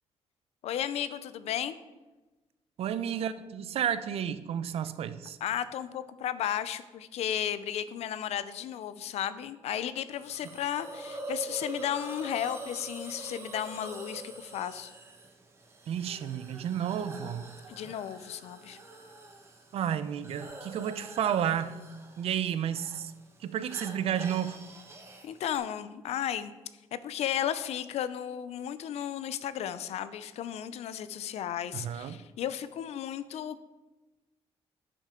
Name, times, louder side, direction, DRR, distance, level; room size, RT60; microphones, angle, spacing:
voice 1, 0.6-1.8 5.4-14.9 17.7-18.8 25.2-26.5 26.9-33.6, left 10 dB, 75° left, 14 dB, 0.5 m, -34 dB
voice 2, 2.8-5.4 15.9-17.6 19.7-21.9 22.2-23.1 23.4-24.7 31.7-32.2, right 9 dB, 65° right, 13 dB, 0.5 m, -32 dB
Hiss, 10.2-25.6, right 2 dB, 25° right, 1.2 m, -45 dB
11.0 x 6.5 x 3.7 m, 1.2 s
cardioid pair, 135°, 11 cm